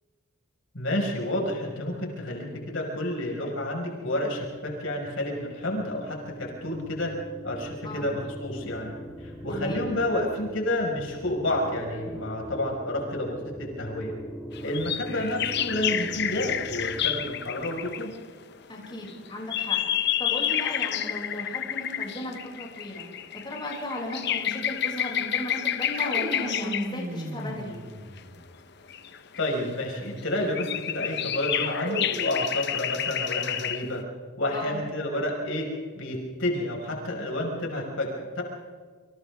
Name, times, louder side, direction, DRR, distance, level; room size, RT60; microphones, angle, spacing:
voice 1, 0.7-7.1 7.4-8.9 9.2-14.1 14.6-18.1 29.4-34.0 34.4-35.7 35.9-38.4, left 1 dB, 70° left, 0 dB, 5.6 m, -30 dB
sound 1, 4.4-18.0, equal, ahead, 3.9 m, -42 dB
voice 2, 9.5-9.8 18.7-19.8 20.2-23.0 23.3-27.7 34.5-34.8, left 1 dB, 25° left, -3 dB, 6.5 m, -36 dB
sound 2, 14.5-18.2 18.8-27.0 28.2-28.3 28.9-29.9 30.2-34.0, left 10 dB, 55° left, 1.0 m, -30 dB
sound 3, 25.9-28.4 31.5-32.5, equal, 50° right, 6.8 m, -35 dB
29.5 x 26.0 x 3.7 m, 1.5 s
head